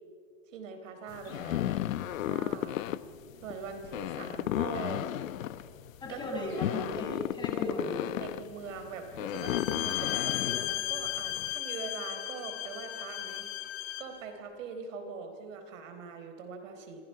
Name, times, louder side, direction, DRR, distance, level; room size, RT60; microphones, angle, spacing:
voice 1, 0.5-2.8 3.4-5.1 6.1-6.5 8.2-13.5 14.0-17.0, right 5 dB, 75° right, 6 dB, 4.3 m, -42 dB
sound 1, 1.1-11.5, left 13 dB, 90° left, 1.0 m, -34 dB
voice 2, 6.0-8.0, left 2 dB, 10° left, -1 dB, 7.0 m, -36 dB
Bowed string instrument, 9.3-14.2, left 14 dB, 35° left, 1.9 m, -35 dB
29.0 x 25.5 x 5.8 m, 2.2 s
supercardioid pair, 155°, 39 cm